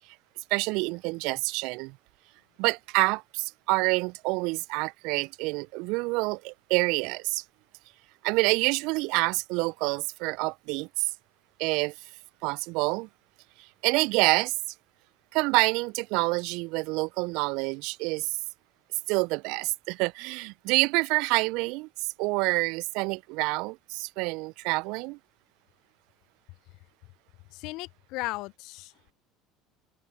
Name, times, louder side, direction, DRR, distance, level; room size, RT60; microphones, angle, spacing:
voice 1, 0.5-1.9 2.6-7.4 8.2-11.0 11.6-11.9 12.4-13.1 13.8-14.5 15.3-18.3 19.1-21.9 22.2-25.2, right 26 dB, 65° right, 0.4 m, -27 dB
voice 2, 27.5-29.1, left 21 dB, 60° left, 0.6 m, -36 dB
hypercardioid pair, 65°, 0 cm